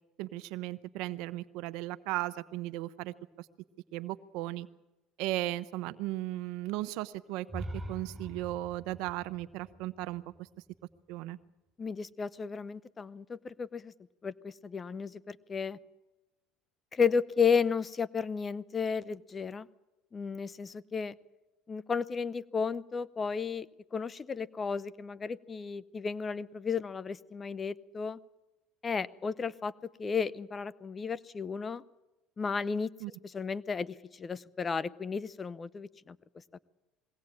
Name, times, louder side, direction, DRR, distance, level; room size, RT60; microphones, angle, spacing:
voice 1, 0.2-3.5 3.9-4.7 5.2-10.5 11.1-11.4 33.0-33.1, right 16 dB, 75° right, 15 dB, 0.8 m, -36 dB
sound 1, 7.5-11.3, right 1 dB, 20° right, 4.7 m, -44 dB
voice 2, 11.8-13.9 14.2-15.8 16.9-19.7 20.1-21.1 21.7-23.7 23.9-28.2 28.8-31.8 32.4-32.9 33.2-36.2, left 5 dB, 25° left, 19 dB, 0.9 m, -33 dB
21.5 x 17.0 x 8.8 m, 1.0 s
supercardioid pair, 100°, 0 cm